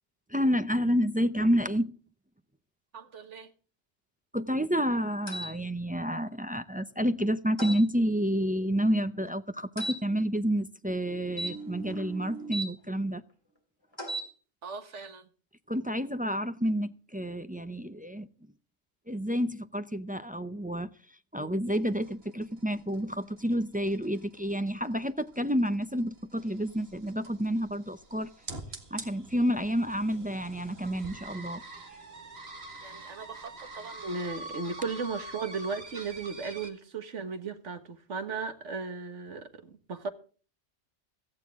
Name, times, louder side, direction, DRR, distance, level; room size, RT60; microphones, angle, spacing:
voice 1, 0.3-1.9 4.3-13.2 15.7-18.3 19.1-20.9 21.3-28.3 28.9-31.6, equal, 10° right, 0.4 m, -29 dB
voice 2, 2.9-3.5 14.6-15.3 32.8-40.1, right 4 dB, 85° right, 1.8 m, -36 dB
sound 1, 5.3-5.5 7.6-7.8 9.8-10.0 11.3-12.7 13.9-14.3, right 1 dB, 20° left, 3.0 m, -36 dB
sound 2, 21.7-36.7, right 2 dB, 60° right, 2.2 m, -46 dB
16.5 x 14.5 x 3.6 m
omnidirectional pair, 1.2 m